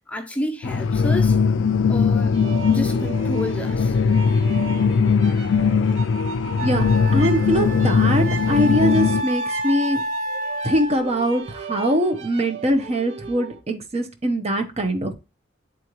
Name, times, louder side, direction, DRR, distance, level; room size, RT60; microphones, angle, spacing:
voice 1, 0.1-1.4 1.9-2.4 2.7-4.0, left 1 dB, 5° left, 0.6 m, -30 dB
sound 1, 0.6-9.2, left 5 dB, 70° left, 0.3 m, -20 dB
sound 2, 2.3-13.6, right 5 dB, 80° right, 0.9 m, -37 dB
Wind instrument woodwind instrument, 5.9-6.0 6.6-11.2, right 1 dB, 50° right, 1.2 m, -29 dB
voice 2, 6.6-10.0 10.6-15.1, equal, 35° right, 0.9 m, -22 dB
8.1 x 3.8 x 3.0 m
head